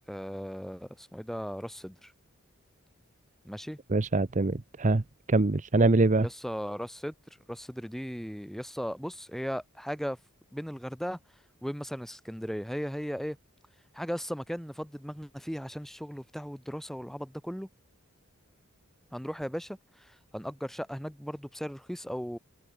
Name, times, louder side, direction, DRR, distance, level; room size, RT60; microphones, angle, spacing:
voice 1, 0.1-2.1 3.4-3.8 6.2-7.1 7.5-10.2 10.5-11.2 11.6-13.4 13.9-17.7 19.1-22.4, equal, ahead, 4.3 m, -37 dB
voice 2, 3.9-5.0 5.3-6.3, right 2 dB, 35° right, 0.7 m, -24 dB
head